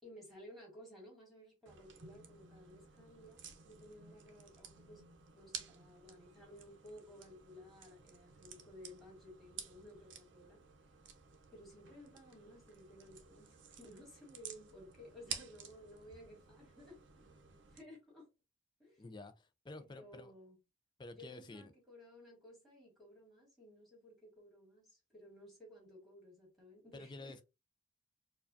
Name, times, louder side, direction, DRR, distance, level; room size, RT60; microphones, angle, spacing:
voice 1, 0.0-5.0 5.3-10.9 11.5-17.0 17.7-18.3 18.8-19.0 19.8-20.6 21.1-27.4, equal, ahead, 2.1 m, -56 dB
sound 1, 1.7-17.8, right 7 dB, 60° right, 0.7 m, -53 dB
voice 2, 19.0-20.3 21.0-21.7 26.9-27.4, left 2 dB, 20° left, 0.4 m, -50 dB
4.6 x 2.3 x 2.5 m
head